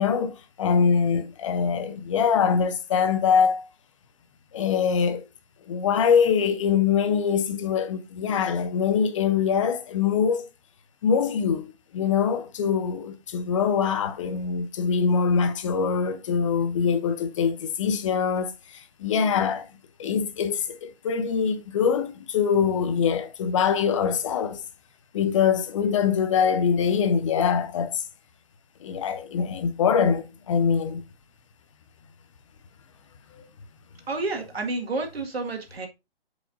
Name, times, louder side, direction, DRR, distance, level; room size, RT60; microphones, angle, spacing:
voice 1, 0.0-3.6 4.5-5.2 5.7-10.5 11.0-19.7 20.0-24.6 25.1-28.0 28.8-31.0 33.3-33.5, left 6 dB, 30° left, 0.7 m, -23 dB
voice 2, 34.1-35.9, right 3 dB, 80° right, 1.9 m, -30 dB
8.8 x 5.0 x 2.6 m
hypercardioid pair, 145°, 30 cm